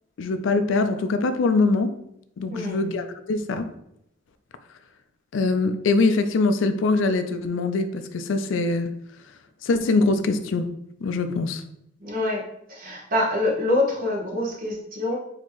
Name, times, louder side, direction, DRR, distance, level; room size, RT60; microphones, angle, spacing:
voice 1, 0.2-1.9 2.4-3.7 5.3-9.0 9.6-10.7 11.0-11.6, left 3 dB, 75° left, 0.4 m, -23 dB
voice 2, 2.5-2.9 12.0-15.2, left 1 dB, 50° right, 1.0 m, -26 dB
4.3 x 2.8 x 2.9 m
head